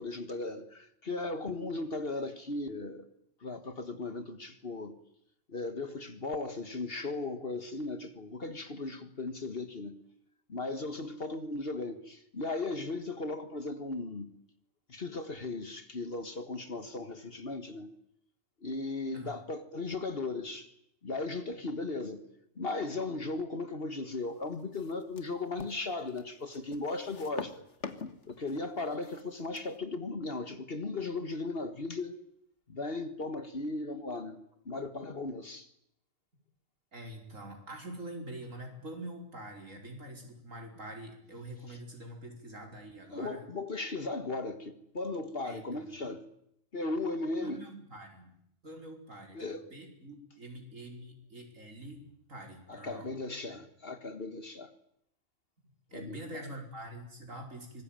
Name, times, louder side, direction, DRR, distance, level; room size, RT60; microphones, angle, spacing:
voice 1, 0.0-3.1 3.4-5.0 5.5-10.0 10.5-14.3 14.9-17.9 18.6-20.7 21.0-22.2 22.6-27.6 28.3-32.1 32.7-34.4 34.7-35.7 43.1-46.2 46.7-47.7 49.3-49.6 52.7-54.7 55.9-56.2, left 3 dB, 50° left, 1.8 m, -37 dB
sound 1, 24.5-29.8, left 5 dB, 65° left, 1.8 m, -46 dB
voice 2, 36.9-43.4 45.4-45.9 47.4-48.3 48.6-53.1 55.9-57.8, right 1 dB, 90° right, 5.5 m, -45 dB
25.0 x 20.0 x 9.0 m
omnidirectional pair, 1.3 m